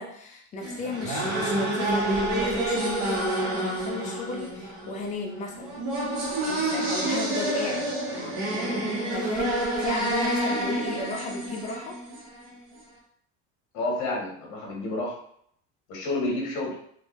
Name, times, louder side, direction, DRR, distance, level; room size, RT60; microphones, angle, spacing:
voice 1, 0.0-5.8 6.5-12.0, left 3 dB, 20° left, 1 dB, 0.5 m, -35 dB
sound 1, 0.6-12.5, right 1 dB, 55° right, 1.3 m, -28 dB
voice 2, 13.7-15.2 15.9-16.7, left 2 dB, 55° left, -2 dB, 1.5 m, -29 dB
3.8 x 2.7 x 3.1 m, 0.65 s
cardioid pair, 175°, 34 cm